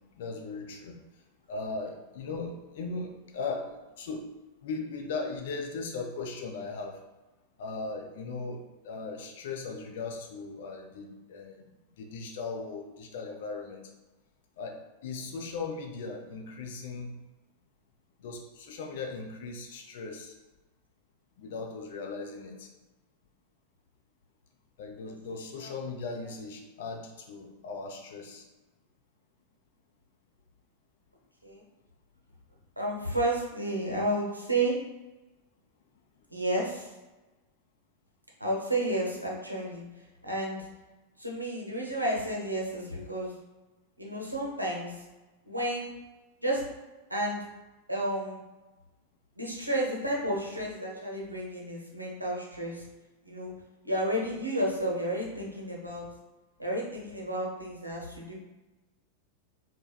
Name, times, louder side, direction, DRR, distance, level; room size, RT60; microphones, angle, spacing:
voice 1, 0.1-0.9 1.5-4.3 4.6-7.0 7.6-11.6 12.0-13.8 14.6-17.1 18.2-20.3 21.4-22.7 24.8-28.4, left 4 dB, 55° left, 2 dB, 0.4 m, -38 dB
voice 2, 32.8-34.8 36.3-36.9 38.4-39.8 40.2-40.7 41.2-43.3 44.0-45.0 45.5-45.9 46.4-46.6 47.1-47.4 47.9-48.4 49.4-52.8 53.2-53.5 53.8-56.1 56.6-58.3, right 1 dB, 85° right, -3 dB, 0.6 m, -31 dB
3.3 x 2.1 x 2.2 m, 1.1 s
figure-of-eight pair, 90°, 0 cm